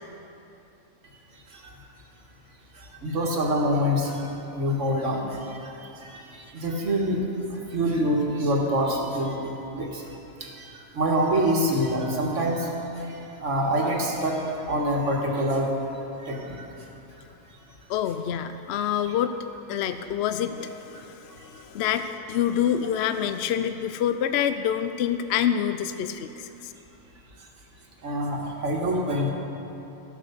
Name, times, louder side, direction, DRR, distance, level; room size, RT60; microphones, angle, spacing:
voice 1, 1.3-1.7 2.7-9.4 9.7-10.1 10.4-15.7 16.2-16.7 21.0-21.1 21.3-21.7 27.4-27.5 28.0-29.3, equal, 60° right, 0 dB, 1.9 m, -26 dB
voice 2, 17.9-19.3 19.7-26.7, left 9 dB, 65° left, 9 dB, 0.6 m, -27 dB
13.5 x 8.6 x 6.8 m, 3.0 s
omnidirectional pair, 1.5 m